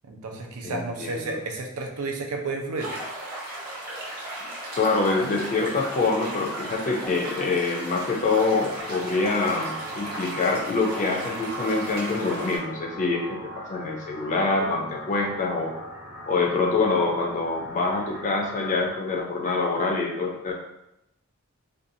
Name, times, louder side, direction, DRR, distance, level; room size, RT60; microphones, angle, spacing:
voice 1, 0.0-2.9, right 3 dB, 85° right, 2 dB, 0.5 m, -31 dB
voice 2, 0.6-1.4 4.7-15.7 16.3-20.5, left 3 dB, 35° left, 0 dB, 0.4 m, -25 dB
sound 1, 2.8-12.6, right 1 dB, 45° right, 0.9 m, -36 dB
sound 2, 8.8-18.9, equal, 10° right, 0.6 m, -40 dB
2.6 x 2.2 x 2.6 m, 0.86 s
head